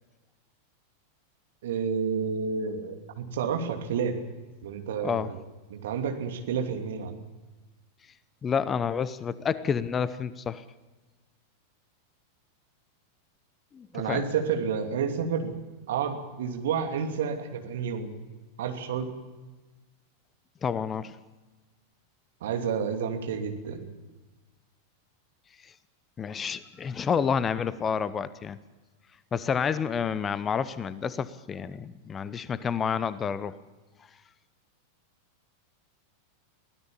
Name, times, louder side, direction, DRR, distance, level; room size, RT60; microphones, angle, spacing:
voice 1, 1.6-4.1 4.6-5.4 5.7-7.2 13.9-15.5 15.9-18.2 18.6-19.1 22.4-23.9, right 6 dB, 60° right, 5 dB, 2.8 m, -30 dB
voice 2, 8.4-10.6 13.7-14.2 20.6-21.2 26.2-28.6 29.3-33.6, left 6 dB, 20° left, 17 dB, 0.8 m, -29 dB
23.5 x 17.0 x 7.1 m, 1.2 s
figure-of-eight pair, 90°, 0 cm